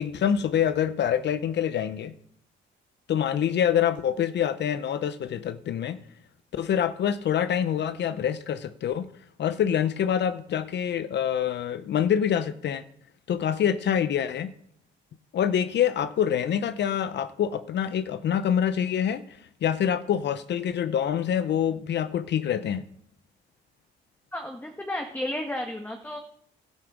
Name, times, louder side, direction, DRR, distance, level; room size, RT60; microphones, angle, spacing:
voice 1, 0.0-2.1 3.1-6.0 6.5-9.1 9.4-12.8 13.3-14.5 15.3-19.2 19.6-22.8, left 9 dB, 60° left, 13 dB, 0.7 m, -26 dB
voice 2, 24.3-26.2, left 1 dB, 10° left, 3 dB, 1.5 m, -32 dB
12.0 x 9.9 x 6.1 m, 0.68 s
cardioid pair, 90°, 20 cm